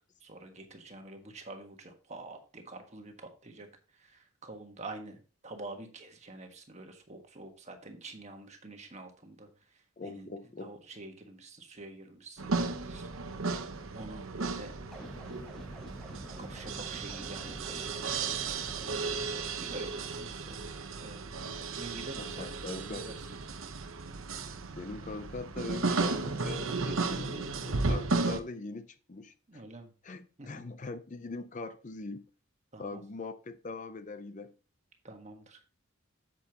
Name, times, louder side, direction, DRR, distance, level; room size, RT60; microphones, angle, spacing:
voice 1, 0.2-3.7 3.9-10.3 10.6-13.1 13.9-14.8 15.1-15.9 16.4-18.4 18.9-21.4 21.7-23.1 29.5-29.9 30.4-30.5 32.7-33.0 35.0-35.7, right 2 dB, 35° right, 1.4 m, -47 dB
voice 2, 10.0-10.7 21.4-21.6 22.1-23.1 24.8-29.6 30.0-32.2 32.8-34.5, left 3 dB, 35° left, 0.5 m, -42 dB
sound 1, 12.4-28.4, right 3 dB, 75° right, 0.9 m, -34 dB
sound 2, 14.9-19.3, right 1 dB, ahead, 1.4 m, -47 dB
8.3 x 7.6 x 2.9 m
head